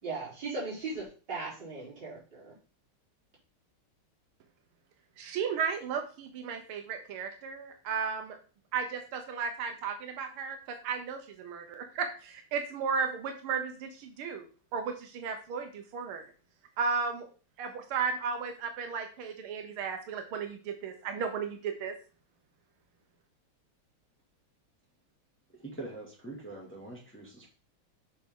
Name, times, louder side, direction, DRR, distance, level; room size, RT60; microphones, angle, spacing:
voice 1, 0.0-2.5, right 3 dB, 55° right, -6 dB, 4.3 m, -38 dB
voice 2, 5.2-8.4 8.7-14.5 14.7-16.2 16.8-17.3 17.6-22.0, right 6 dB, 85° right, 6 dB, 1.8 m, -34 dB
voice 3, 25.6-27.5, right 2 dB, 5° left, -3 dB, 2.0 m, -43 dB
7.2 x 5.6 x 3.7 m, 0.37 s
omnidirectional pair, 2.3 m